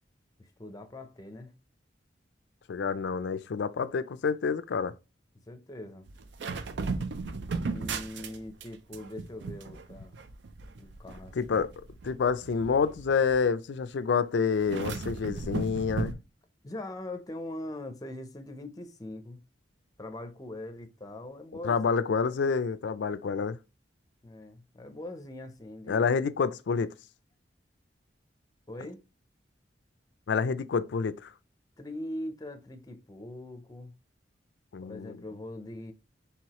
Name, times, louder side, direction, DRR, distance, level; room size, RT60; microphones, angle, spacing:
voice 1, 0.4-1.5 5.5-6.1 7.6-10.1 10.8-11.7 16.6-19.4 20.0-21.8 24.2-26.1 28.7-29.0 31.8-33.9 34.8-35.9, left 1 dB, 20° left, 0.5 m, -41 dB
voice 2, 2.7-4.9 11.4-11.7 12.0-16.2 21.6-23.6 25.9-26.9 30.3-31.3 34.7-35.2, left 5 dB, 70° left, 0.4 m, -28 dB
sound 1, 6.1-8.7 8.9-13.4 14.6-16.1, right 4 dB, 70° right, 0.5 m, -36 dB
4.7 x 3.4 x 2.9 m
head